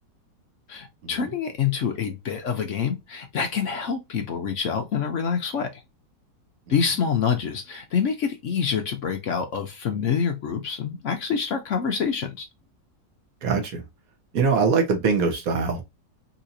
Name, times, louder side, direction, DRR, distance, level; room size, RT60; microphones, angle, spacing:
voice 1, 0.7-5.8 6.7-12.5, left 6 dB, 65° left, 0.7 m, -26 dB
voice 2, 13.4-13.8 14.3-15.8, right 5 dB, 55° right, 1.4 m, -23 dB
4.0 x 2.9 x 2.6 m
omnidirectional pair, 2.0 m